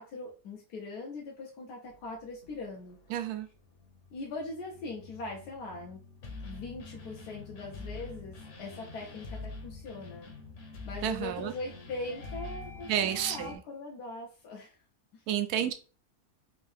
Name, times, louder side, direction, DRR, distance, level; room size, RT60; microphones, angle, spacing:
voice 1, 0.0-3.0 4.1-6.0 6.4-10.3 10.8-14.8 15.1-15.2, left 2 dB, 85° left, -2 dB, 1.3 m, -41 dB
sound 1, 1.8-13.5, left 3 dB, 55° left, 1.1 m, -46 dB
voice 2, 3.1-3.5 11.0-11.5 12.9-13.6 15.3-15.7, right 10 dB, 80° right, 8 dB, 1.1 m, -30 dB
3.6 x 2.6 x 3.3 m, 0.36 s
omnidirectional pair, 1.7 m